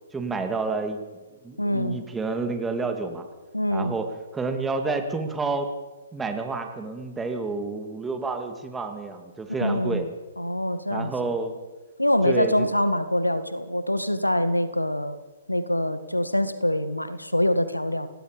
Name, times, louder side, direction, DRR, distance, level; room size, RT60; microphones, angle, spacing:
voice 1, 0.1-1.1 1.4-3.2 3.7-5.7 6.1-10.1 10.9-11.6 12.2-12.7, right 3 dB, 10° right, 5 dB, 2.5 m, -29 dB
voice 2, 1.6-2.0 3.5-4.0 9.6-10.0 10.4-11.1 12.0-15.2 15.5-18.1, left 1 dB, 90° left, 12 dB, 1.7 m, -24 dB
26.5 x 18.5 x 5.3 m, 1.2 s
figure-of-eight pair, 125°, 0 cm